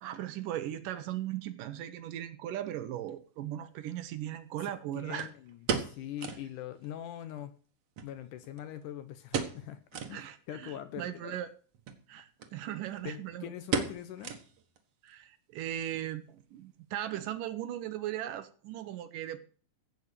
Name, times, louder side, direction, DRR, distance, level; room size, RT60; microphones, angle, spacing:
voice 1, 0.0-5.3 10.1-11.5 12.1-13.5 15.0-19.4, right 12 dB, 75° right, 2.3 m, -38 dB
sound 1, 3.1-3.2 5.2-6.5 6.8-6.9 7.2-7.3 8.0-8.8 9.3-9.7 9.9-10.2 10.7-10.8 11.7-12.0 12.4-12.5 12.8-13.2 13.7-14.8 15.1-15.2 15.8-16.1 16.4-16.5, right 6 dB, 55° right, 2.1 m, -35 dB
voice 2, 4.6-7.5 8.0-9.8 10.1-11.4 13.0-14.3, left 11 dB, 75° left, 2.1 m, -43 dB
16.0 x 5.4 x 8.3 m
omnidirectional pair, 4.2 m